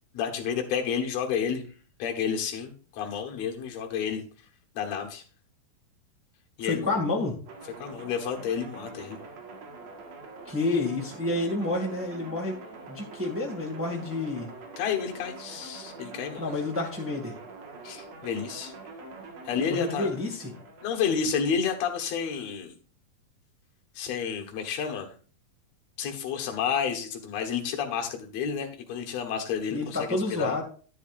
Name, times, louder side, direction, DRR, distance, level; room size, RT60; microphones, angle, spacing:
voice 1, 0.1-1.6 2.0-4.2 4.8-5.2 6.6-7.0 7.8-9.2 14.8-16.5 17.8-18.7 19.5-20.1 20.8-22.7 24.0-25.1 26.0-30.6, left 7 dB, 60° left, 3 dB, 2.4 m, -30 dB
voice 2, 6.6-7.4 10.4-12.6 12.9-14.5 16.4-17.4 19.6-20.5 29.7-30.6, left 2 dB, 5° right, -2 dB, 1.2 m, -29 dB
sound 1, 7.5-21.2, right 3 dB, 60° right, 2.7 m, -45 dB
10.5 x 9.9 x 2.5 m, 0.39 s
omnidirectional pair, 3.7 m